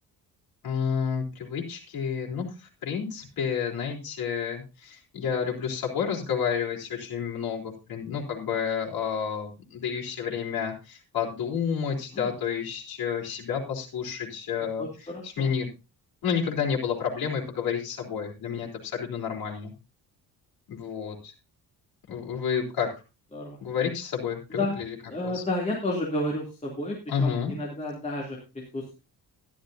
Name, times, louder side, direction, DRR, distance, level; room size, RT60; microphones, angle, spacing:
voice 1, 0.6-14.9 15.2-15.7 16.2-19.7 20.7-21.3 22.1-22.9 23.6-25.0 25.2-25.4 27.1-27.5, left 7 dB, 75° left, -2 dB, 3.8 m, -30 dB
voice 2, 14.8-15.5 23.3-23.6 24.5-24.8 25.1-28.4 28.7-29.0, left 1 dB, 20° left, -3 dB, 2.9 m, -31 dB
13.5 x 12.0 x 2.8 m, 0.29 s
cardioid pair, 145°, 36 cm